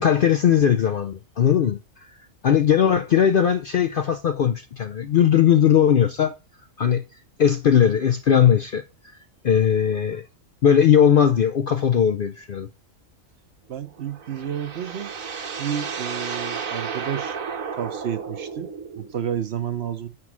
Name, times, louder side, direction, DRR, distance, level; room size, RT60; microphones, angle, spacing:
voice 1, 0.0-1.8 2.4-6.3 6.8-7.0 7.4-8.8 9.4-10.3 10.6-12.7, left 8 dB, 60° left, 0.6 m, -19 dB
voice 2, 13.7-15.1 15.6-17.4 17.8-20.1, right 9 dB, 55° right, 0.9 m, -30 dB
sound 1, 13.9-19.1, right 6 dB, 85° right, 1.6 m, -33 dB
6.1 x 6.1 x 6.0 m
omnidirectional pair, 1.4 m